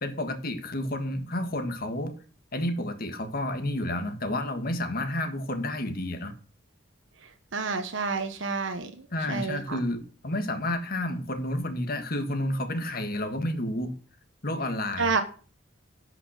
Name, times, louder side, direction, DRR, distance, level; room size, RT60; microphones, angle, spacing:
voice 1, 0.0-2.2 2.5-6.3 9.1-13.9 14.4-15.1, left 1 dB, 50° left, 7 dB, 1.7 m, -30 dB
voice 2, 7.5-9.8 15.0-15.2, right 4 dB, 65° right, 6 dB, 1.1 m, -29 dB
11.5 x 5.9 x 6.5 m, 0.39 s
head